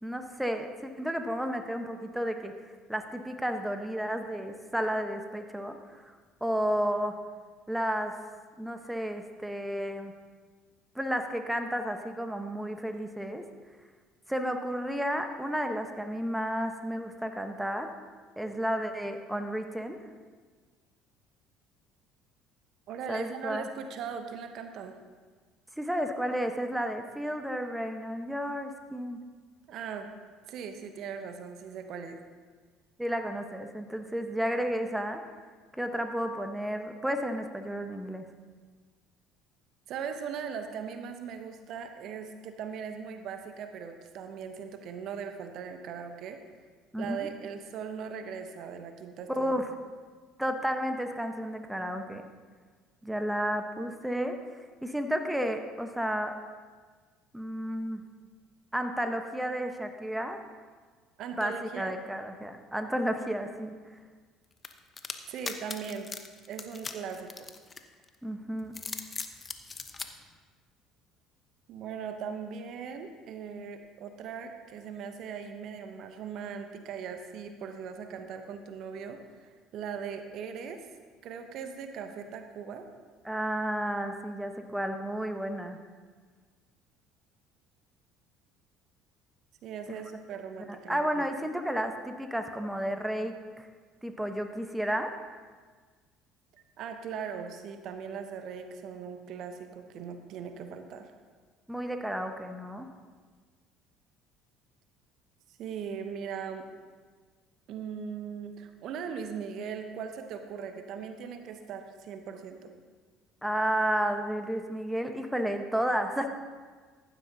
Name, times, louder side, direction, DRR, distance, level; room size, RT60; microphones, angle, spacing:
voice 1, 0.0-2.5 2.9-6.1 6.4-7.2 7.7-8.1 8.6-10.1 10.9-13.4 14.3-17.9 18.4-20.0 23.1-23.7 25.8-29.2 33.0-35.2 35.7-38.2 46.9-47.3 49.3-49.7 50.4-52.2 53.0-54.4 54.8-56.3 57.3-58.0 58.7-60.4 61.4-63.7 68.2-68.7 83.2-85.8 90.7-93.7 94.0-95.1 101.7-102.9 113.4-116.3, equal, 5° right, 6 dB, 1.1 m, -32 dB
voice 2, 22.9-24.9 29.7-30.1 30.5-32.2 39.9-46.4 47.0-49.6 61.2-62.0 65.3-66.1 66.5-67.5 71.7-80.9 81.2-82.9 89.6-91.3 96.5-101.1 105.6-106.7 107.7-112.7, right 6 dB, 55° right, 7 dB, 0.9 m, -39 dB
sound 1, 64.6-68.1 68.6-70.1, left 4 dB, 30° left, 0.9 m, -39 dB
15.0 x 11.5 x 2.8 m, 1.5 s
hypercardioid pair, 60°, 0 cm